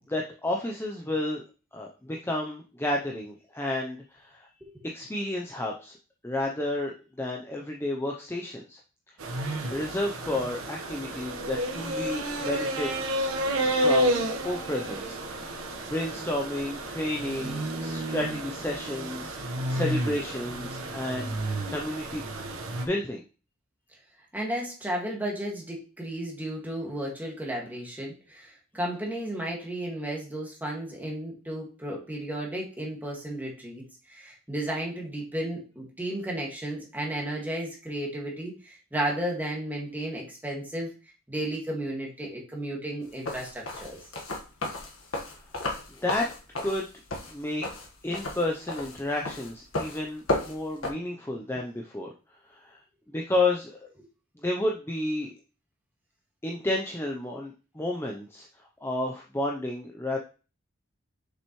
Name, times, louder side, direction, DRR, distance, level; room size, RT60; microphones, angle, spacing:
voice 1, 0.1-1.4 1.7-4.5 4.9-5.9 6.2-8.8 9.7-13.0 13.7-15.2 15.9-19.3 19.7-22.3 22.8-23.2 46.0-46.3 46.6-46.9 47.3-47.7 48.0-52.1 52.5-52.8 53.1-53.9 54.4-55.3 56.4-58.5 58.8-60.2, left 1 dB, 10° left, 0 dB, 0.6 m, -31 dB
sound 1, 9.2-22.9, right 1 dB, 80° right, 1.2 m, -31 dB
voice 2, 24.3-33.8 34.1-40.9 41.3-44.0, right 1 dB, 10° right, -2 dB, 1.9 m, -33 dB
sound 2, 43.1-50.9, left 2 dB, 75° left, 1.5 m, -33 dB
6.7 x 5.6 x 3.1 m, 0.34 s
head